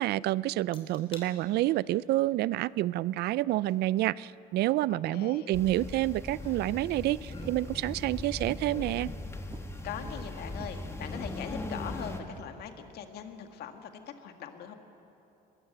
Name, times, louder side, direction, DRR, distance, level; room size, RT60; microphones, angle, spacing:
voice 1, 0.0-9.1, right 16 dB, 75° right, 20 dB, 0.4 m, -28 dB
sound 1, 0.7-1.3 1.7-2.1 3.7-3.8 6.4-6.9 7.2-7.6 8.3-9.4 9.9-11.5 11.9-12.4 12.8-12.9, left 2 dB, 35° left, 3.9 m, -49 dB
voice 2, 4.9-5.5 9.8-13.9 14.2-14.7, left 8 dB, 70° left, 6 dB, 1.9 m, -41 dB
sound 2, 5.5-12.2, left 2 dB, 15° left, 1.6 m, -39 dB
sound 3, 6.4-12.7, right 4 dB, 25° right, 1.3 m, -50 dB
22.0 x 20.5 x 8.0 m, 2.9 s
cardioid pair, 110°, 17 cm